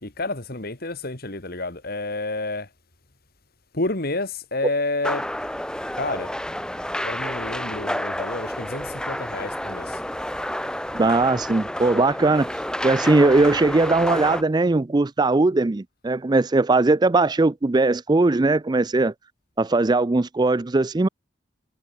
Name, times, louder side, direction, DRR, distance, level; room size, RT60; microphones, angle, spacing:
voice 1, 0.0-2.7 3.7-5.2 6.0-6.3 7.0-10.0, left 2 dB, 50° left, 2.7 m, -29 dB
sound 1, 5.0-14.4, left 1 dB, 5° left, 1.4 m, -30 dB
voice 2, 10.9-12.5 12.8-19.1 19.6-21.1, right 2 dB, 20° right, 0.4 m, -19 dB
head